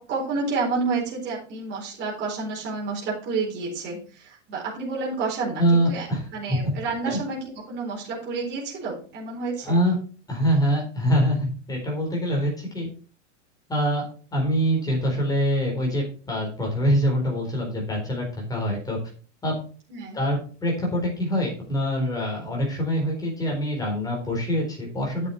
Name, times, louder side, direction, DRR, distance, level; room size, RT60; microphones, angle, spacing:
voice 1, 0.0-6.1 6.3-9.8 19.9-20.2, right 4 dB, 30° right, -4 dB, 4.2 m, -30 dB
voice 2, 5.6-6.2 6.5-6.6 7.0-7.2 9.6-10.0 10.3-12.9 13.7-14.0 14.3-19.0 19.4-19.5 20.1-25.3, equal, 10° left, -1 dB, 4.2 m, -24 dB
9.5 x 7.4 x 4.3 m, 0.39 s
supercardioid pair, 150°, 35 cm